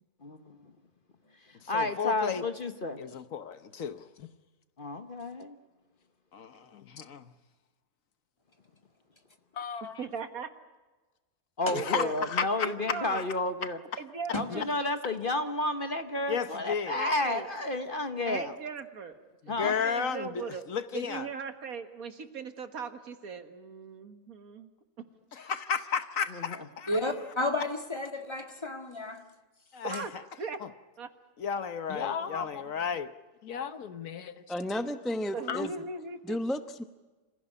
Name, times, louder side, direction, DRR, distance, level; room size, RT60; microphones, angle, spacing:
voice 1, 0.2-0.6 1.7-3.0 4.8-5.6 11.6-13.8 14.3-18.5 19.5-19.7 26.3-26.6, left 2 dB, 40° left, 1.1 m, -31 dB
voice 2, 1.7-2.4 3.0-4.0 6.3-7.2 11.7-13.2 16.3-17.0 19.6-21.3 25.3-27.0 29.7-30.1 30.6-30.7 31.4-33.1, left 6 dB, 60° left, 1.2 m, -33 dB
voice 3, 6.7-7.0 9.6-10.1 14.5-14.6 31.9-32.7 33.4-34.4 35.4-35.7, left 7 dB, 75° left, 1.6 m, -37 dB
voice 4, 10.0-10.5 11.7-12.1 12.6-13.2 14.0-14.7 16.9-17.5 18.3-19.2 19.6-20.6 20.9-24.7 25.4-25.5 29.8-30.1 30.4-30.6 31.0-31.1 32.0-32.3 35.3-36.4, right 5 dB, 65° right, 1.9 m, -39 dB
voice 5, 26.9-29.2, left 2 dB, 15° left, 1.8 m, -32 dB
voice 6, 34.5-35.7 36.2-36.8, equal, ahead, 0.6 m, -32 dB
26.0 x 15.5 x 9.9 m
omnidirectional pair, 1.7 m